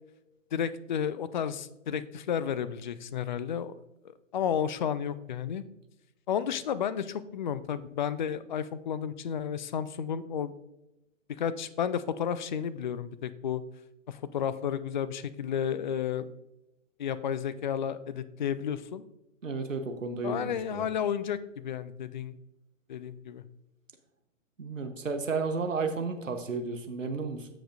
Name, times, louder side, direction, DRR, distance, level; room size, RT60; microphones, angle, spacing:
voice 1, 0.5-3.7 4.3-5.6 6.3-10.5 11.4-13.6 14.1-16.3 17.0-19.0 20.2-22.4 22.9-23.4, left 8 dB, 40° left, 15 dB, 0.4 m, -32 dB
voice 2, 19.4-20.9 24.6-27.5, right 4 dB, 80° right, 6 dB, 1.0 m, -33 dB
14.5 x 5.1 x 2.5 m, 0.91 s
figure-of-eight pair, 120°, 38 cm